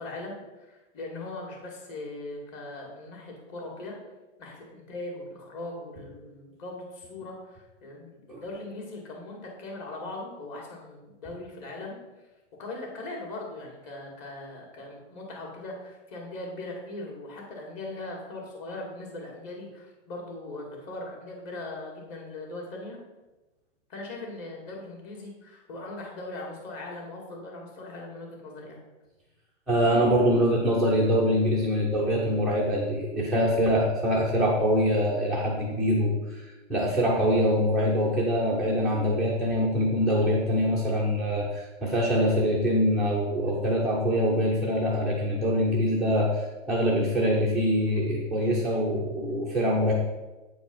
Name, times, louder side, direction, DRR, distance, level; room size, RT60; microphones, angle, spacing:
voice 1, 0.0-3.9 4.4-12.0 12.6-23.0 23.9-28.8, left 2 dB, 35° left, -1 dB, 2.3 m, -40 dB
voice 2, 29.7-49.9, equal, ahead, -6 dB, 0.4 m, -24 dB
8.2 x 4.7 x 5.4 m, 1.1 s
hypercardioid pair, 145°, 37 cm